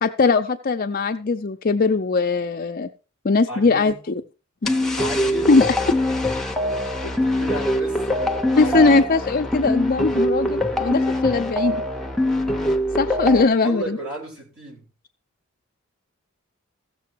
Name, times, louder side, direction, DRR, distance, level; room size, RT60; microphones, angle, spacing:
voice 1, 0.0-2.9 3.2-3.9 4.6-4.7 5.5-5.7 8.6-11.8 12.9-14.0, left 3 dB, 40° left, 5 dB, 0.5 m, -20 dB
voice 2, 3.5-3.9 4.9-5.6 7.0-9.1 13.6-14.9, right 1 dB, 65° right, -2 dB, 6.6 m, -33 dB
sound 1, 4.6-13.5, left 1 dB, ahead, 0.9 m, -23 dB
15.0 x 6.8 x 4.6 m, 0.33 s
head